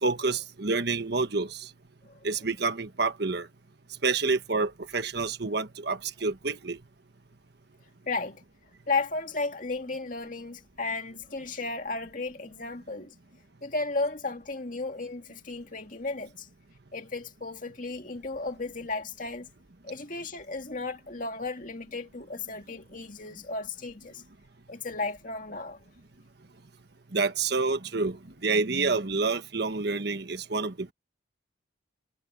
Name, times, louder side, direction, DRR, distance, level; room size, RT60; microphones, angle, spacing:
voice 1, 0.0-1.7 2.2-3.5 4.0-6.8 27.1-30.9, right 4 dB, 55° right, 1.4 m, -28 dB
voice 2, 8.1-8.4 8.9-13.1 13.6-16.5 16.9-19.5 19.8-24.2 24.7-25.8, left 3 dB, 40° left, 2.3 m, -34 dB
head